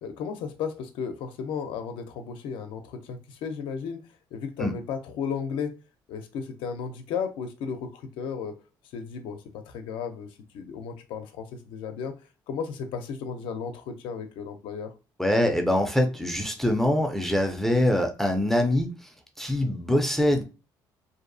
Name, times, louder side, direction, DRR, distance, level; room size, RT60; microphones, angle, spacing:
voice 1, 0.0-4.0 4.3-5.8 6.1-8.6 8.9-10.3 10.5-12.1 12.5-14.9, left 6 dB, 85° left, 0.5 m, -34 dB
voice 2, 15.2-19.1 19.4-20.4, left 1 dB, 5° left, 0.4 m, -24 dB
2.6 x 2.0 x 2.6 m
cardioid pair, 125°, 8 cm